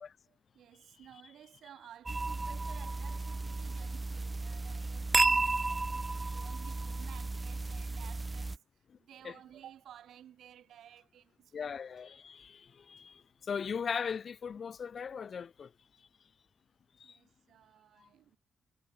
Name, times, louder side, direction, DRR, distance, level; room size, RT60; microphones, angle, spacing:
voice 1, 0.3-8.6 9.0-11.7 17.0-18.4, right 10 dB, 80° right, 2.3 m, -55 dB
sound 1, 2.1-8.6, right 3 dB, 30° right, 1.0 m, -33 dB
voice 2, 11.5-13.2 13.5-15.7 17.0-17.1, left 6 dB, 60° left, 1.4 m, -38 dB
cardioid pair, 60°, 0 cm